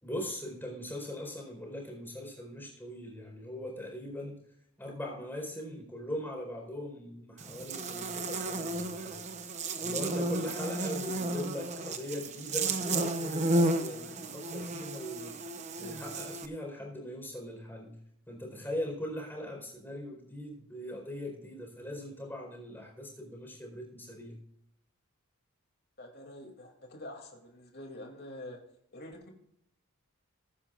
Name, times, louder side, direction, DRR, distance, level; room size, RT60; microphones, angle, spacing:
voice 1, 0.0-4.4 4.8-9.3 9.8-15.4 15.8-17.9 18.3-24.4, equal, 10° left, 0 dB, 4.4 m, -40 dB
Buzz, 7.4-16.5, right 2 dB, 30° right, 0.9 m, -33 dB
voice 2, 26.0-28.6 28.9-29.3, left 1 dB, 45° left, 1 dB, 2.9 m, -46 dB
21.5 x 10.0 x 2.5 m, 0.75 s
head